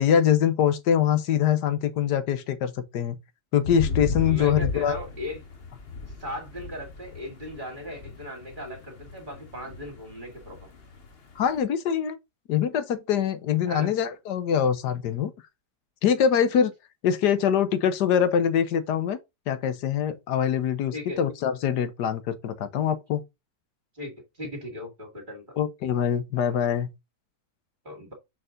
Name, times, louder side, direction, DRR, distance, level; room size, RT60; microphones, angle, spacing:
voice 1, 0.0-3.2 3.5-5.0 11.4-12.2 12.5-15.3 16.0-16.7 17.0-19.2 19.5-23.2 25.6-26.9, left 8 dB, 80° left, 1.4 m, -24 dB
sound 1, 3.6-11.6, left 3 dB, 40° left, 1.4 m, -35 dB
voice 2, 4.2-5.4 6.2-10.6 13.6-13.9 20.9-21.2 23.9-24.1 24.4-25.6 27.8-28.1, left 1 dB, 30° right, 2.0 m, -37 dB
6.6 x 4.1 x 3.8 m
omnidirectional pair, 1.8 m